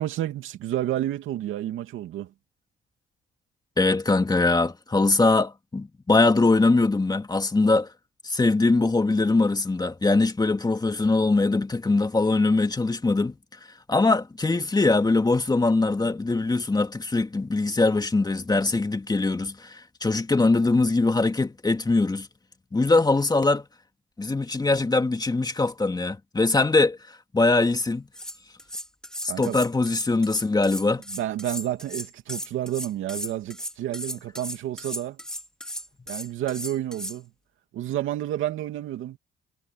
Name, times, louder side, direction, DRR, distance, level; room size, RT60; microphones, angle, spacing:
voice 1, 0.0-2.3 29.3-29.6 31.1-35.2 36.1-37.3 37.7-39.2, right 13 dB, 85° right, 2.6 m, -30 dB
voice 2, 3.8-7.9 8.2-13.4 13.9-22.3 22.7-23.6 24.2-27.0 27.3-28.1 29.4-31.0, left 3 dB, 20° left, 2.4 m, -22 dB
sound 1, 27.9-28.0 28.1-37.2, equal, 5° left, 3.0 m, -36 dB
cardioid pair, 90°, 20 cm